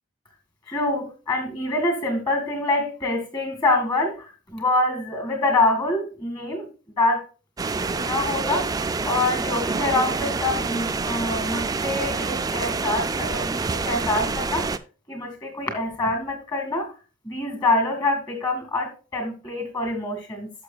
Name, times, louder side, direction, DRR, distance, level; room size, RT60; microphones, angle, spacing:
voice 1, 0.7-6.7 7.0-7.2 7.9-14.8 15.1-16.9 17.3-20.5, left 2 dB, 20° left, 2.0 m, -25 dB
sound 1, 7.6-14.8, right 4 dB, 20° right, 0.3 m, -27 dB
11.0 x 6.8 x 2.3 m
head